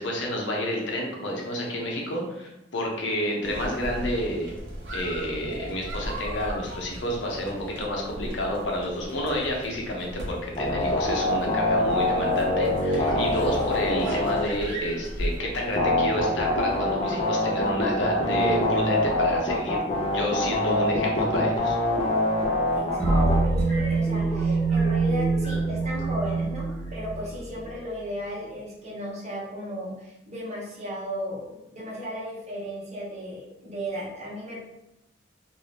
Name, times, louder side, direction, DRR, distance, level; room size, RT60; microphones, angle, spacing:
voice 1, 0.0-4.5 4.9-19.8 20.1-21.8, equal, 70° left, -1 dB, 0.7 m, -29 dB
sound 1, 3.4-15.7, equal, 80° right, 0.9 m, -37 dB
sound 2, 10.6-14.4 15.8-23.4, left 1 dB, 30° left, 0.6 m, -24 dB
voice 2, 22.7-34.6, equal, 35° right, -5 dB, 1.0 m, -35 dB
sound 3, 23.0-27.7, right 3 dB, 10° left, 1.2 m, -24 dB
2.6 x 2.6 x 3.3 m, 0.93 s
head